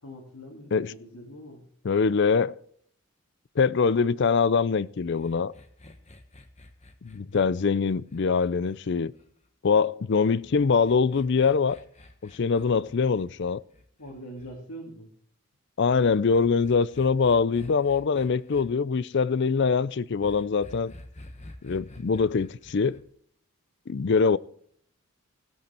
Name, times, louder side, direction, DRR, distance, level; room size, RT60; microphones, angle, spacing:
voice 1, 0.0-1.6 14.0-15.1, equal, 90° left, 2.7 m, -43 dB
voice 2, 1.8-2.6 3.6-5.5 7.0-9.1 9.6-11.8 12.2-13.6 15.8-20.9 21.6-23.0 23.9-24.4, left 5 dB, 50° left, 0.4 m, -23 dB
sound 1, 5.1-9.5 10.4-14.5 15.9-18.6 20.2-23.0, left 1 dB, 30° left, 1.3 m, -49 dB
17.0 x 8.5 x 4.4 m
head